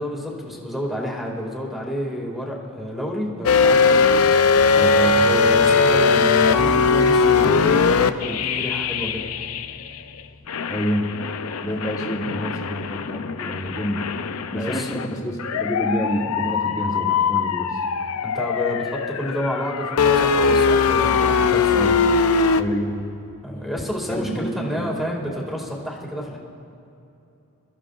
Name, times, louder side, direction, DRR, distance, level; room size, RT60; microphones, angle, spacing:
voice 1, 0.0-4.6 5.1-9.3 14.6-14.9 18.2-21.8 23.4-26.4, equal, ahead, -2 dB, 2.1 m, -29 dB
sound 1, 3.4-10.0 10.5-22.6, left 5 dB, 75° left, 0.5 m, -20 dB
voice 2, 4.7-5.2 10.7-11.1 11.6-14.1 14.5-17.7 21.7-22.0 22.6-23.0 24.1-24.9, equal, 15° left, -1 dB, 1.3 m, -27 dB
27.0 x 14.0 x 2.5 m, 2.8 s
head